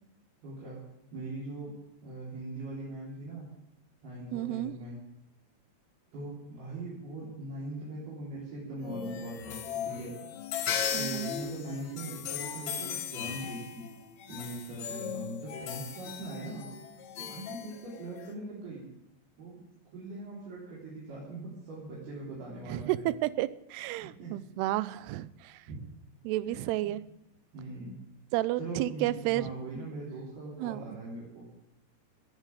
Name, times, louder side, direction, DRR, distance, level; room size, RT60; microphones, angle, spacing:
voice 1, 0.4-0.8 1.1-1.8 2.0-3.5 4.0-5.0 6.1-10.1 10.9-13.9 14.3-16.7 17.3-18.9 19.4-19.7 19.9-23.1 24.2-24.3 25.7-25.8 26.5-27.0 27.5-28.0 28.6-31.5, right 2 dB, 65° right, -6 dB, 5.6 m, -41 dB
voice 2, 4.3-4.7 10.9-11.3 17.2-17.3 22.7-25.6 26.2-27.0 28.3-29.5 30.6-30.8, right 16 dB, 80° right, 18 dB, 2.6 m, -32 dB
sound 1, 8.8-18.3, left 8 dB, 75° left, 1.6 m, -37 dB
18.0 x 7.4 x 9.1 m, 0.89 s
omnidirectional pair, 4.9 m